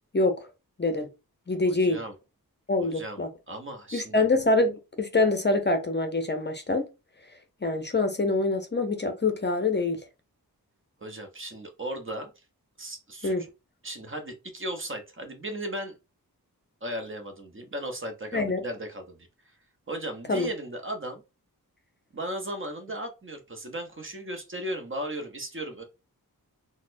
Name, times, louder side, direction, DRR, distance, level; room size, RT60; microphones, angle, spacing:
voice 1, 0.1-0.5 0.8-1.1 1.5-2.0 2.7-3.3 3.9-6.9 7.6-10.0 13.2-13.4 18.3-18.6 20.3-20.5, left 2 dB, 30° left, 0.6 m, -25 dB
voice 2, 1.6-2.1 2.8-3.2 3.5-4.3 11.0-12.4 12.8-13.3 13.8-16.0 16.8-19.6 19.9-21.2 22.1-25.8, right 1 dB, 35° right, 0.8 m, -36 dB
4.0 x 2.1 x 2.5 m
cardioid pair, 50°, 37 cm